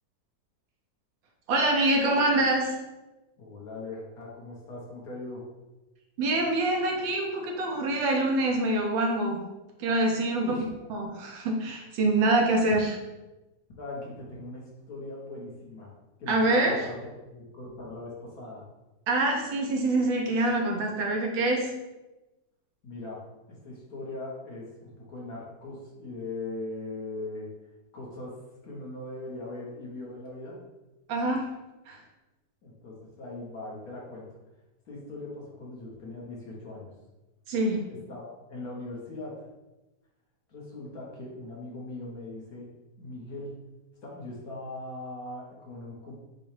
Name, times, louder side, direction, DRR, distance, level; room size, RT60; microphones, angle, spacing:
voice 1, 1.5-2.7 6.2-9.4 9.8-10.6 10.9-13.0 16.3-16.9 19.1-21.7 31.1-31.5 31.9-32.0 37.5-37.9, right 2 dB, 90° right, 1 dB, 1.6 m, -25 dB
voice 2, 3.4-5.4 10.4-10.7 12.7-12.8 13.8-15.9 16.2-18.7 22.8-23.2 23.6-27.5 27.9-28.4 28.6-30.6 32.6-34.2 34.8-36.9 37.9-39.3 40.5-42.7 43.0-43.5 44.0-46.2, left 2 dB, 55° left, -4 dB, 1.5 m, -40 dB
6.7 x 2.4 x 3.3 m, 1.0 s
omnidirectional pair, 2.0 m